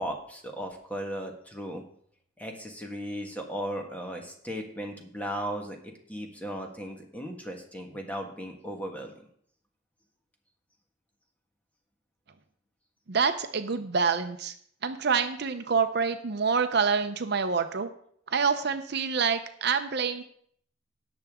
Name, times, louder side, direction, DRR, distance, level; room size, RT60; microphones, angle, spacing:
voice 1, 0.0-1.8 2.4-9.1, equal, 10° left, 2 dB, 1.5 m, -36 dB
voice 2, 13.1-14.5 14.8-17.9 18.3-20.2, right 5 dB, 55° right, 9 dB, 0.7 m, -27 dB
18.0 x 6.8 x 3.6 m, 0.64 s
head